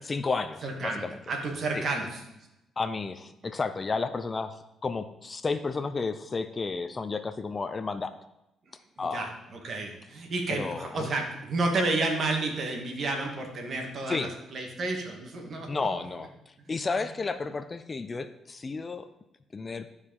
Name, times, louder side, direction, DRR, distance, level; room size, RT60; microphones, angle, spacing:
voice 1, 0.1-1.2 1.7-1.9 2.8-8.1 9.0-9.3 10.5-11.1 14.1-14.3 15.7-16.3 16.7-19.1 19.5-19.9, left 4 dB, 30° left, 11 dB, 0.6 m, -32 dB
voice 2, 0.6-2.2 9.0-15.8, right 2 dB, 55° right, 2 dB, 2.1 m, -31 dB
12.0 x 4.9 x 5.5 m, 0.90 s
cardioid pair, 90°, 0 cm